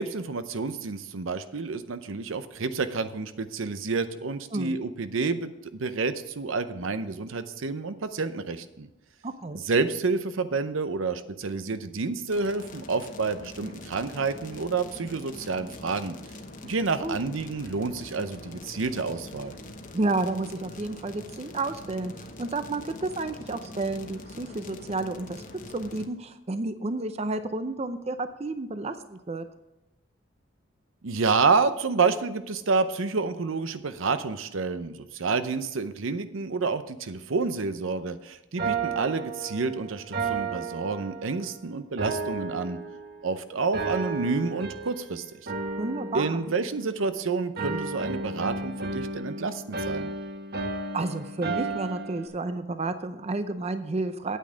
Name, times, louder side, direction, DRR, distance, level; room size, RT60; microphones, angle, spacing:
voice 1, 0.0-8.9 9.7-16.2 16.6-19.6 31.0-42.8 43.2-45.2 46.1-50.1, right 4 dB, 80° right, 11 dB, 0.7 m, -29 dB
voice 2, 9.2-9.6 17.0-17.2 19.9-25.4 25.7-29.5 45.8-46.4 50.9-54.4, right 2 dB, 30° right, 10 dB, 0.5 m, -31 dB
sound 1, 12.3-26.0, left 2 dB, 40° left, 1.0 m, -44 dB
sound 2, 38.6-41.5 42.0-43.3 43.7-45.1 45.5-47.2 47.6-52.3, right 3 dB, 55° right, 1.2 m, -33 dB
9.1 x 8.7 x 5.0 m, 0.95 s
head